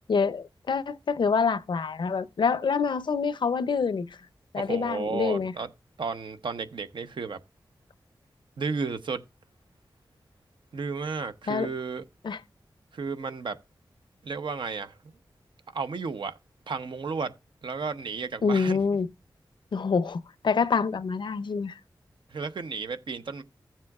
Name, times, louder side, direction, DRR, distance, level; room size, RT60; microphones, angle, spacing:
voice 1, 0.1-4.1 4.5-5.5 11.5-11.7 12.2-12.4 18.4-19.1 19.7-21.8, left 5 dB, 75° left, 0.6 m, -26 dB
voice 2, 4.6-5.7 6.0-7.4 8.6-9.2 10.7-12.0 12.9-13.6 14.2-15.0 15.7-16.4 16.7-17.3 17.6-18.8 22.3-23.4, right 4 dB, 80° right, 0.8 m, -33 dB
15.5 x 7.4 x 2.3 m
wide cardioid pair, 105°, 8 cm